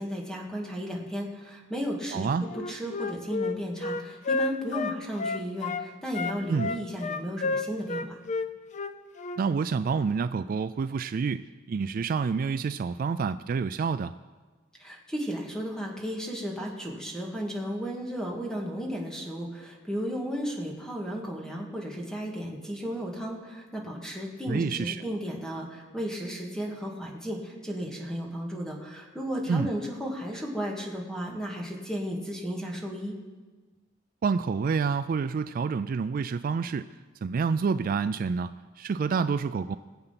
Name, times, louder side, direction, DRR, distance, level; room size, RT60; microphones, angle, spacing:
voice 1, 0.0-8.2 14.8-33.1, equal, 5° left, -1 dB, 2.1 m, -34 dB
voice 2, 2.1-2.5 6.5-6.7 9.4-14.1 24.5-25.0 29.5-29.7 34.2-36.9 37.2-39.8, right 5 dB, 50° right, 12 dB, 0.3 m, -28 dB
Wind instrument woodwind instrument, 2.5-5.9 6.1-9.4, left 3 dB, 40° left, 0.6 m, -31 dB
19.5 x 7.9 x 5.9 m, 1.3 s
head